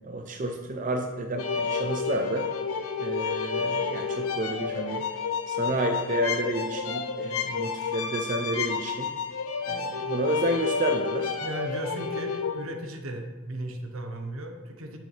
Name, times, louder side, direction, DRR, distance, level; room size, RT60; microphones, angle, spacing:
voice 1, 0.0-2.5 3.0-5.1 5.5-9.1 9.7-11.4, right 1 dB, 35° right, 3 dB, 0.5 m, -30 dB
sound 1, 1.4-12.7, left 5 dB, 80° left, 0.7 m, -30 dB
voice 2, 11.4-15.0, right 1 dB, 70° right, 4 dB, 1.1 m, -36 dB
10.5 x 6.6 x 3.3 m, 1.3 s
head